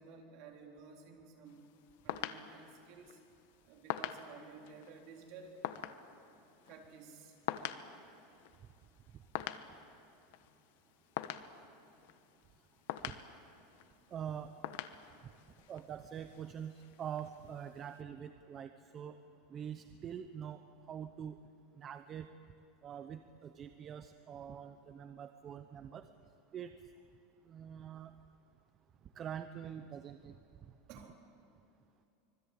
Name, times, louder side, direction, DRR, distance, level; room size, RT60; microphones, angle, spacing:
voice 1, 0.0-1.6 2.0-3.2 3.7-5.5 6.7-7.3 30.9-31.2, right 5 dB, 50° right, 1 dB, 4.0 m, -53 dB
sound 1, 1.5-18.0, left 12 dB, 70° left, 1.2 m, -46 dB
voice 2, 14.1-14.6 15.2-15.3 15.7-19.2 19.5-21.4 21.7-22.3 22.8-26.1 26.5-26.7 27.4-28.1 29.1-30.7, right 8 dB, 25° right, 9 dB, 0.8 m, -45 dB
25.0 x 21.0 x 8.6 m, 2.7 s
supercardioid pair, 160°, 0 cm